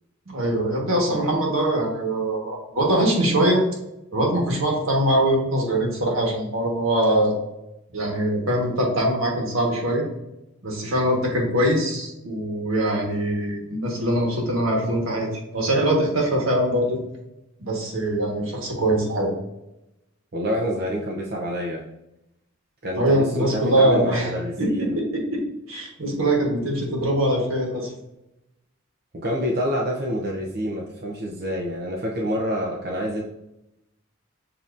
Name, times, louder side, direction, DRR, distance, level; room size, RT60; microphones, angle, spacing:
voice 1, 0.3-3.6 4.1-7.4 7.9-10.0 10.6-15.3 15.5-17.0 17.6-19.3 22.9-24.3 24.6-25.4 25.7-27.9, right 1 dB, 80° right, -1 dB, 1.4 m, -22 dB
voice 2, 20.3-21.8 22.8-25.0 29.1-33.2, equal, 50° right, -3 dB, 0.6 m, -27 dB
7.1 x 2.9 x 2.5 m, 0.89 s
head